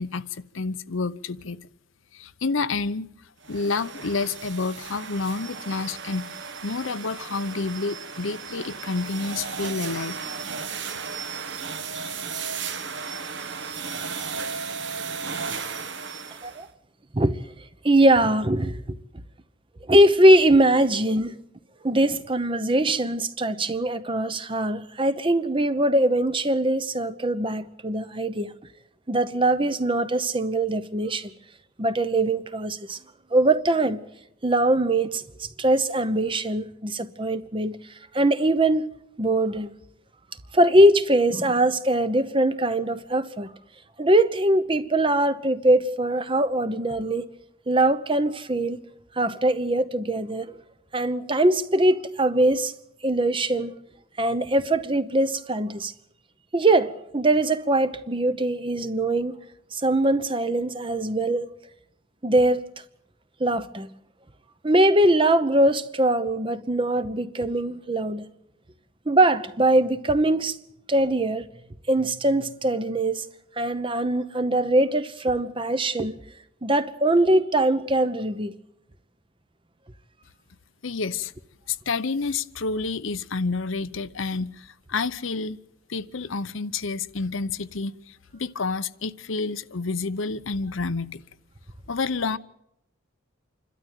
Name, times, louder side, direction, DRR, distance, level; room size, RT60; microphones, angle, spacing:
voice 1, 0.0-1.6 2.1-3.1 3.5-6.3 6.6-10.2 80.8-81.3 81.7-85.6 85.9-91.2 91.9-92.4, left 4 dB, 75° left, 0.8 m, -29 dB
sound 1, 3.4-16.7, right 5 dB, 60° right, 1.3 m, -35 dB
voice 2, 17.8-19.0 19.9-21.4 21.8-28.5 29.1-31.3 31.8-33.0 33.3-34.0 34.4-37.8 38.1-39.7 40.5-43.5 44.0-47.3 47.7-48.8 49.2-50.5 50.9-52.7 53.0-53.7 54.2-55.9 56.5-59.3 59.7-61.5 62.2-62.6 63.4-63.9 64.6-68.3 69.1-70.6 70.9-71.5 71.9-73.2 73.6-76.1 76.6-78.5, right 1 dB, 25° right, 0.9 m, -22 dB
28.0 x 12.5 x 9.1 m
head